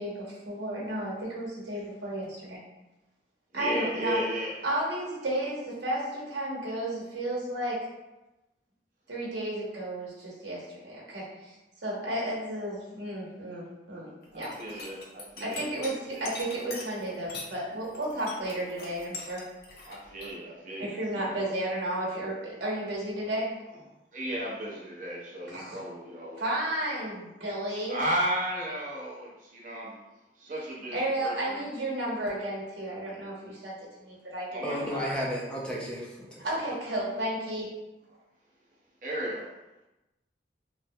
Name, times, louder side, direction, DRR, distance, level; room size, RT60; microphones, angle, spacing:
voice 1, 0.0-2.6 3.5-4.2 4.6-7.9 9.1-11.6 11.8-14.1 14.3-14.9 15.4-19.4 20.8-23.5 25.5-25.8 26.4-28.0 30.9-34.8 36.4-37.7, right 1 dB, 90° right, -5 dB, 1.1 m, -33 dB
voice 2, 3.5-4.6 14.3-15.7 16.1-16.2 19.8-21.3 24.1-26.5 27.8-29.9 30.4-31.7 34.5-35.2 39.0-39.5, right 1 dB, 45° right, -4 dB, 0.6 m, -34 dB
glass rattle, 14.2-17.5 17.8-20.3, left 3 dB, 60° left, 0.5 m, -42 dB
voice 3, 34.6-36.5, equal, 5° left, -3 dB, 0.3 m, -33 dB
3.1 x 2.1 x 2.6 m, 1.0 s
head